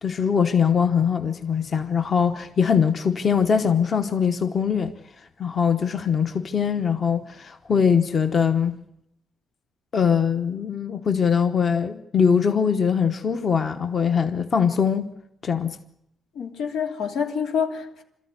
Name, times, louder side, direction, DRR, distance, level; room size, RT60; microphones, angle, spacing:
voice 1, 0.0-4.9 5.4-8.7 9.9-15.1 15.4-15.8, left 6 dB, 35° left, 1.0 m, -22 dB
voice 2, 16.3-18.0, left 7 dB, 90° left, 3.0 m, -27 dB
27.0 x 13.5 x 9.8 m
wide cardioid pair, 175°, 0 cm